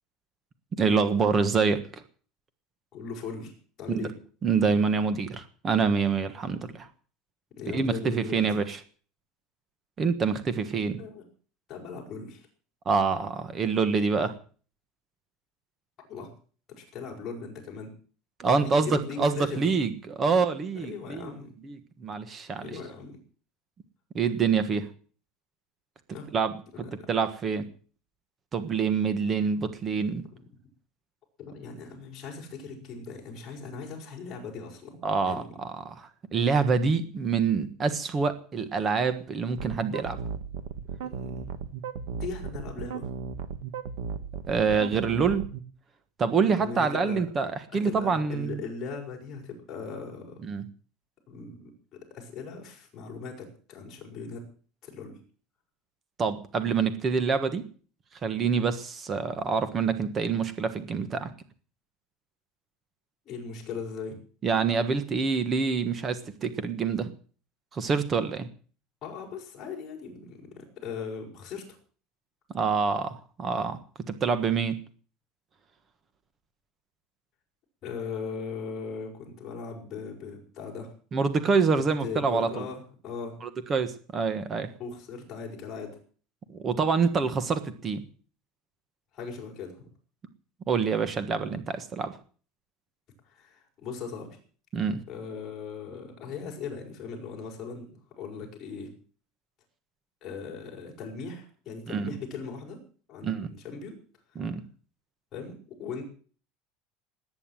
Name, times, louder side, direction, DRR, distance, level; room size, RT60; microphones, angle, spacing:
voice 1, 0.7-1.8 3.9-4.1 4.4-6.9 7.7-8.8 10.0-11.0 12.8-14.3 18.4-21.3 21.6-22.7 24.1-24.9 26.3-26.6 27.1-27.7 28.5-30.3 35.0-40.2 44.5-45.4 46.2-48.6 50.4-50.6 56.2-57.6 58.2-61.3 64.4-67.1 67.7-68.5 72.5-73.8 74.1-74.8 81.1-82.7 83.7-84.7 86.6-88.0 90.7-92.1 94.7-95.0 101.9-102.1 103.2-103.5 104.4-104.6, right 5 dB, 20° right, 11 dB, 1.4 m, -26 dB
voice 2, 2.9-3.5 3.8-4.1 7.6-8.4 11.0-11.2 11.7-12.5 16.1-16.3 16.7-17.9 18.4-19.7 20.7-21.5 22.6-23.2 26.1-26.3 26.7-26.8 30.3-30.5 31.4-35.0 35.3-35.5 41.0-41.5 42.2-43.1 46.4-47.2 47.7-50.4 51.3-54.5 54.8-55.2 63.2-64.2 69.0-71.8 77.8-80.9 81.7-83.4 84.8-86.0 89.1-89.8 93.3-94.4 95.1-98.9 100.2-102.8 103.1-104.0 105.3-106.0, left 5 dB, 25° left, -1 dB, 6.4 m, -39 dB
sound 1, 39.6-45.6, right 6 dB, 80° right, 1.7 m, -35 dB
18.5 x 9.6 x 7.6 m, 0.42 s
cardioid pair, 170°, 0 cm